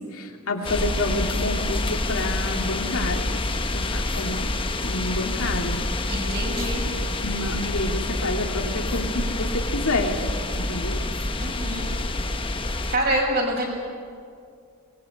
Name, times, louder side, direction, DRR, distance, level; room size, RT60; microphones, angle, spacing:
voice 1, 0.1-3.4 3.7-4.5 4.8-5.8 7.2-10.2 10.6-11.0, left 2 dB, 75° left, 2 dB, 2.7 m, -28 dB
sound 1, 0.6-13.0, left 2 dB, 25° left, 1.1 m, -27 dB
voice 2, 6.1-6.8 11.4-11.9 12.9-13.6, right 1 dB, 45° right, -1 dB, 6.5 m, -26 dB
24.0 x 21.0 x 8.6 m, 2.3 s
head